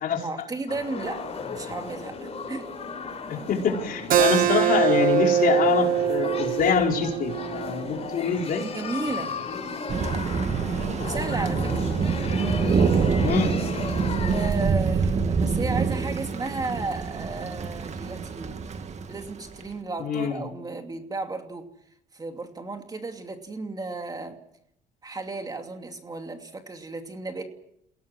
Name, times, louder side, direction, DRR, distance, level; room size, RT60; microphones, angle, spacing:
voice 1, 0.2-2.7 8.6-9.4 11.0-11.8 14.3-18.6 19.1-21.7 22.1-24.4 25.0-27.4, right 3 dB, 20° right, 5 dB, 2.8 m, -34 dB
sound 1, 0.7-14.5, left 4 dB, 35° left, 5.5 m, -35 dB
voice 2, 3.3-8.6 13.2-13.6 20.0-20.4, left 7 dB, 60° left, 1 dB, 4.8 m, -25 dB
Keyboard (musical), 4.1-9.3, right 10 dB, 55° right, 1.0 m, -24 dB
Thunder, 9.9-19.6, right 5 dB, 40° right, 2.0 m, -26 dB
29.5 x 17.5 x 6.3 m, 0.72 s
cardioid pair, 110°, 17 cm